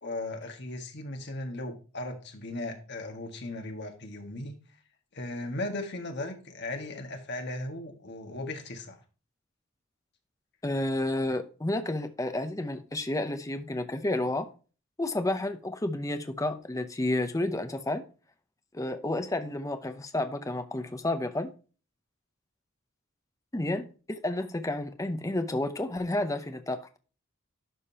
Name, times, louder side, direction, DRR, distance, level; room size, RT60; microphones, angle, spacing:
voice 1, 0.0-4.6 5.1-9.0, left 2 dB, 55° left, 1.7 m, -37 dB
voice 2, 10.6-14.5 15.0-18.0 18.7-21.5 23.5-27.0, left 1 dB, 15° left, 0.7 m, -31 dB
11.5 x 5.3 x 2.8 m
head